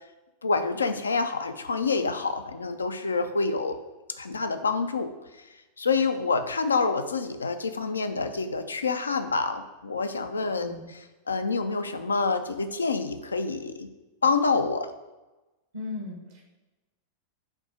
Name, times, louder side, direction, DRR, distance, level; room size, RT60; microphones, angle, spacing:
voice 1, 0.4-3.8 4.1-5.1 5.4-5.5 5.8-10.8 11.3-13.9 14.2-14.9, left 4 dB, 75° left, 9 dB, 0.4 m, -27 dB
voice 2, 15.7-16.4, left 3 dB, 65° right, 0 dB, 1.0 m, -37 dB
7.2 x 2.7 x 4.9 m, 1.1 s
figure-of-eight pair, 90°, 0 cm